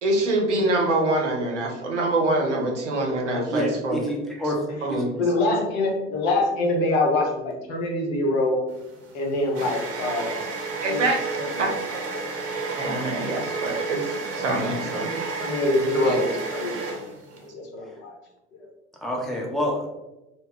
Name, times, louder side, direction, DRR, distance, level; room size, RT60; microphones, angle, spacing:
voice 1, 0.0-4.0 4.8-5.2 10.8-11.2 11.6-11.7 12.8-15.1 16.0-16.2, right 2 dB, 85° right, 1 dB, 0.6 m, -25 dB
voice 2, 3.5-4.6 4.9-5.1 19.0-19.9, equal, ahead, -1 dB, 0.7 m, -27 dB
voice 3, 5.2-8.6 9.1-10.4 10.9-11.0 11.4-11.5 14.9-16.9 17.4-18.1 18.5-18.7, left 2 dB, 65° left, -1 dB, 0.8 m, -25 dB
sound 1, 8.7-17.4, right 3 dB, 45° right, 0.9 m, -31 dB
2.2 x 2.1 x 3.6 m, 0.97 s
figure-of-eight pair, 65°, 35 cm